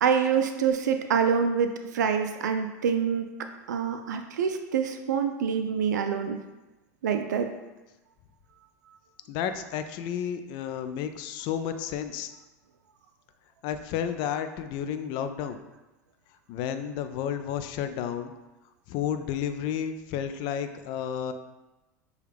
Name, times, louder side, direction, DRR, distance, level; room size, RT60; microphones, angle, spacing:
voice 1, 0.0-3.3 3.7-6.4 7.0-7.5, right 7 dB, 90° right, 6 dB, 0.3 m, -26 dB
voice 2, 9.3-12.3 13.6-15.6 16.5-18.3 18.9-21.3, left 9 dB, 55° left, 9 dB, 0.4 m, -31 dB
6.3 x 2.3 x 3.4 m, 1.1 s
hypercardioid pair, 100°, 9 cm